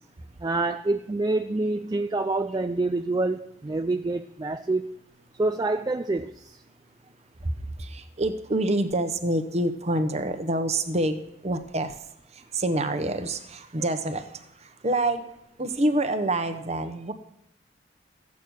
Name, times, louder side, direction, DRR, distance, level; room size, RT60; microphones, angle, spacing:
voice 1, 0.4-4.9 5.4-6.6, right 2 dB, 25° right, 8 dB, 0.4 m, -27 dB
voice 2, 7.4-15.2 15.6-17.1, right 1 dB, 40° right, 9 dB, 1.0 m, -27 dB
14.0 x 8.4 x 6.4 m, 0.78 s
head